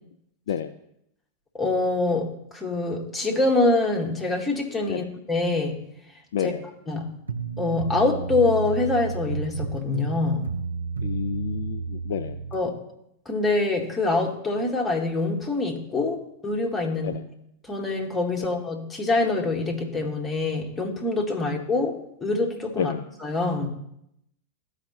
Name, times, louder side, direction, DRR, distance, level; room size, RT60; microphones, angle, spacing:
voice 1, 1.5-5.9 6.4-6.5 6.9-7.1 7.6-10.5 12.5-12.8 13.2-17.2 17.6-22.9 23.2-23.7, left 3 dB, 10° left, 0 dB, 1.3 m, -25 dB
voice 2, 6.3-6.6 11.0-12.4 17.0-17.2 22.8-23.0, left 8 dB, 60° left, 8 dB, 0.3 m, -29 dB
sound 1, 7.3-12.6, right 5 dB, 75° right, 0.5 m, -31 dB
13.5 x 4.9 x 3.0 m, 0.78 s
figure-of-eight pair, 90°, 0 cm